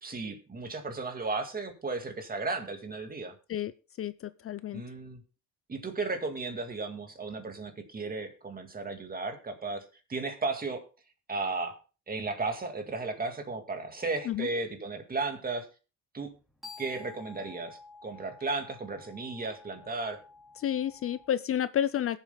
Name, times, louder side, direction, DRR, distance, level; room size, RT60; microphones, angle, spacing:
voice 1, 0.0-3.3 4.7-5.2 5.7-9.8 10.1-10.8 11.3-11.8 12.1-15.7 16.1-16.3 16.8-20.2, right 3 dB, 30° right, 5 dB, 2.1 m, -34 dB
voice 2, 4.0-4.8 14.2-14.5 20.6-22.2, left 10 dB, 50° left, 15 dB, 0.5 m, -30 dB
sound 1, 16.3-21.3, left 4 dB, ahead, 2.9 m, -51 dB
21.5 x 7.4 x 2.2 m, 0.33 s
cardioid pair, 90°, 30 cm